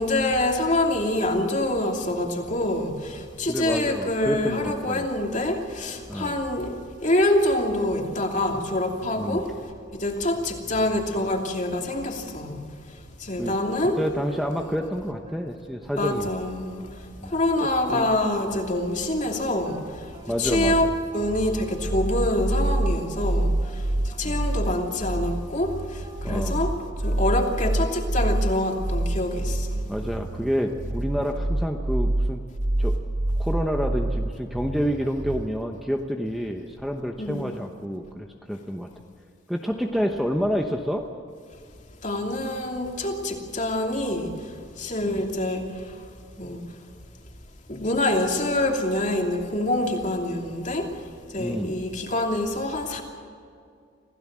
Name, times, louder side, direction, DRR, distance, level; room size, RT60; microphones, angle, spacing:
voice 1, 0.0-6.7 7.0-9.5 9.9-12.6 13.2-14.0 16.0-16.9 17.2-20.9 21.1-26.8 27.0-29.8 37.2-37.6 42.0-44.5 44.8-46.0 46.4-46.6 47.7-50.9 51.3-53.0, left 1 dB, 40° left, 2 dB, 2.8 m, -26 dB
voice 2, 3.5-5.1 6.1-6.4 9.2-9.4 13.4-13.5 14.0-16.3 17.2-18.1 20.3-20.9 24.2-24.5 26.2-26.6 29.9-32.4 32.8-32.9 33.4-38.9 39.5-41.0 45.0-45.2 51.4-51.8, equal, ahead, 3 dB, 1.0 m, -28 dB
sound 1, 13.5-16.0 16.8-17.0 17.3-22.8 23.2-24.3 24.6-24.8 25.1-26.7 27.0-27.8, right 1 dB, 30° right, 5.1 m, -50 dB
sound 2, 20.4-35.5, right 1 dB, 65° right, 1.4 m, -27 dB
27.0 x 16.5 x 7.6 m, 2.3 s
head